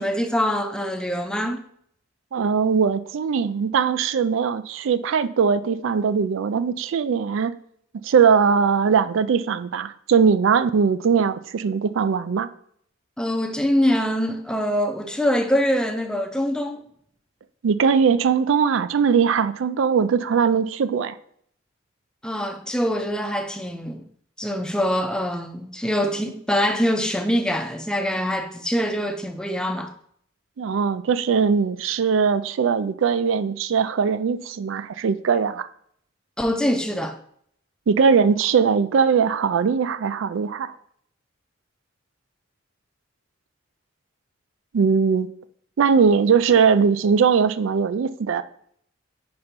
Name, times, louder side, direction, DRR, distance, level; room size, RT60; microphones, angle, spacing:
voice 1, 0.0-1.7 13.2-16.8 22.2-24.0 24.4-29.9 36.4-37.2, equal, 5° left, 0.5 m, -24 dB
voice 2, 2.3-7.5 8.0-12.5 17.6-21.2 30.6-35.7 37.9-40.7 44.7-45.3 45.8-48.4, right 6 dB, 70° right, 0.4 m, -20 dB
5.3 x 4.4 x 5.1 m
head